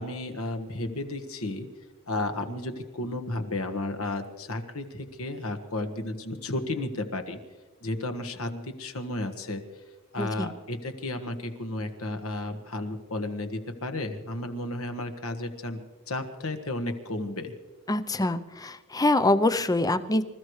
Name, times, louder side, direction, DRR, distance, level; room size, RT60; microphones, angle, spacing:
voice 1, 0.0-1.7 2.1-7.4 7.8-9.6 10.1-15.8 16.1-17.5, left 2 dB, 65° left, 7 dB, 1.5 m, -33 dB
voice 2, 10.2-10.5 17.9-20.2, left 2 dB, 15° left, 11 dB, 0.6 m, -25 dB
26.0 x 14.5 x 3.2 m, 1.2 s
head